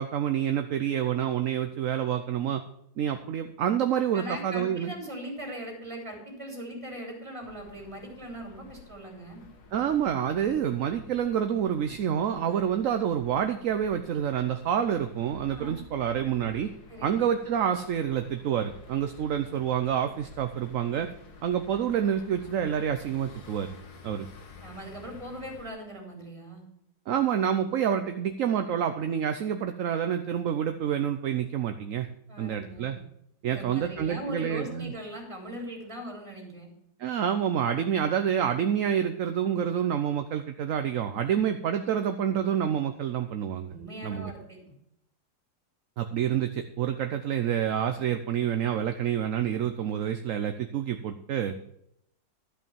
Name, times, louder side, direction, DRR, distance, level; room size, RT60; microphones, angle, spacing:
voice 1, 0.0-2.6 3.0-5.0 9.7-16.7 17.0-21.1 21.4-23.7 24.0-24.3 27.1-32.1 32.4-33.0 33.4-34.9 37.0-43.7 44.0-44.3 46.0-51.5, right 9 dB, 60° right, 7 dB, 0.9 m, -28 dB
voice 2, 4.1-9.4 12.5-12.6 15.5-15.8 16.9-17.3 24.6-26.7 32.3-33.0 33.5-36.7 41.3-41.4 43.6-44.6, equal, 15° right, 1 dB, 3.4 m, -40 dB
sound 1, 7.4-25.7, left 4 dB, 65° left, 1.9 m, -51 dB
12.5 x 5.5 x 7.1 m, 0.76 s
omnidirectional pair, 1.9 m